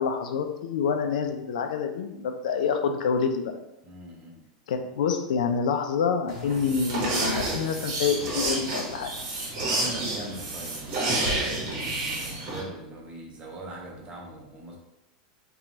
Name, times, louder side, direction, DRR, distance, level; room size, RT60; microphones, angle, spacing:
voice 1, 0.0-3.5 4.7-9.1, left 6 dB, 80° left, 6 dB, 0.3 m, -27 dB
voice 2, 3.8-4.4 9.6-14.8, right 1 dB, 30° right, -2 dB, 0.8 m, -41 dB
sound 1, 6.3-12.6, right 2 dB, 55° right, 0.9 m, -30 dB
2.9 x 2.3 x 2.6 m, 0.90 s
hypercardioid pair, 110°, 4 cm